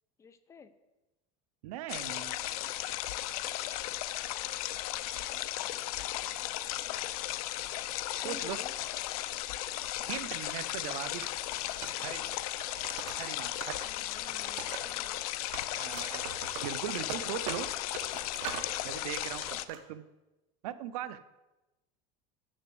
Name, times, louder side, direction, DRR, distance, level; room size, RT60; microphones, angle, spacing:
voice 1, 0.2-0.7 4.1-4.8 5.1-5.5 6.5-7.2 8.2-8.7 13.8-15.3, left 6 dB, 15° left, 11 dB, 0.6 m, -53 dB
voice 2, 1.6-2.4 8.2-8.6 10.0-11.2 12.0-12.4 13.2-13.8 15.7-17.7 18.8-20.1 20.6-21.2, right 12 dB, 90° right, 12 dB, 0.7 m, -39 dB
sound 1, 1.9-19.7, left 15 dB, 85° left, 0.6 m, -36 dB
Wood, 11.2-13.9 14.2-15.2 15.5-18.7 19.1-19.8, right 7 dB, 75° right, 1.3 m, -43 dB
7.7 x 6.5 x 7.8 m, 1.0 s
supercardioid pair, 150°, 18 cm